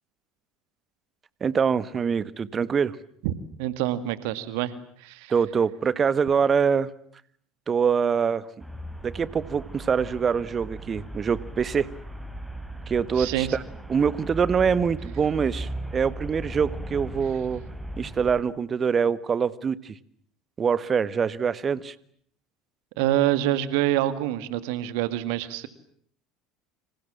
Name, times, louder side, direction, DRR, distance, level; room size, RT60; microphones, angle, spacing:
voice 1, 1.4-3.0 5.3-6.9 7.7-8.5 9.0-11.9 12.9-13.6 13.9-17.6 18.0-20.0 20.6-21.9, right 6 dB, 30° right, 17 dB, 1.4 m, -24 dB
voice 2, 3.6-5.3 13.1-13.6 23.0-25.7, right 13 dB, 65° right, 14 dB, 1.9 m, -26 dB
Traffic noise roadway noise, 8.6-18.4, right 1 dB, 5° right, 5.1 m, -37 dB
29.5 x 26.5 x 7.4 m, 0.63 s
figure-of-eight pair, 70°, 0 cm